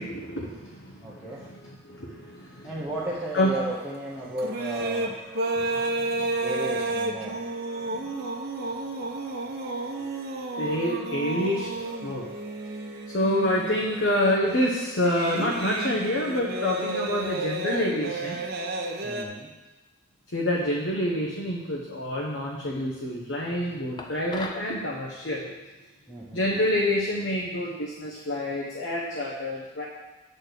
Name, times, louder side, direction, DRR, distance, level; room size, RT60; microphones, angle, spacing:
voice 1, 0.0-2.7 3.3-3.5 5.6-5.7 6.2-6.3 7.9-8.0 10.6-11.7 12.0-12.2 13.1-18.4 20.3-25.5 26.3-29.8, left 1 dB, 70° left, -2 dB, 1.0 m, -27 dB
voice 2, 1.0-1.4 2.6-5.1 6.4-7.3 19.0-19.5 26.1-26.5, right 1 dB, 10° right, -7 dB, 0.8 m, -34 dB
sound 1, 2.9-19.3, right 2 dB, 50° right, 0.8 m, -32 dB
sound 2, 24.0-24.7, left 3 dB, 20° left, 0.5 m, -38 dB
8.4 x 4.3 x 6.6 m, 1.1 s
head